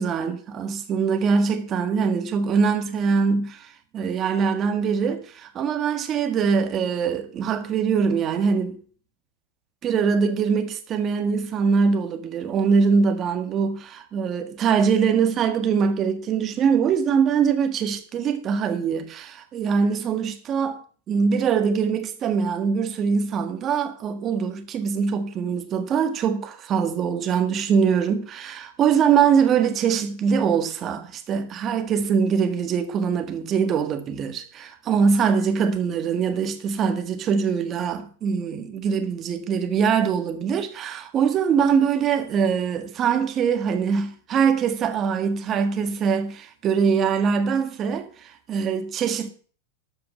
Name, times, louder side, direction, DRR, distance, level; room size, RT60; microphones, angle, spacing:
voice 1, 0.0-8.8 9.8-20.8 21.1-49.3, right 6 dB, 25° right, 1.6 m, -23 dB
13.0 x 5.9 x 7.8 m
supercardioid pair, 165°, 0 cm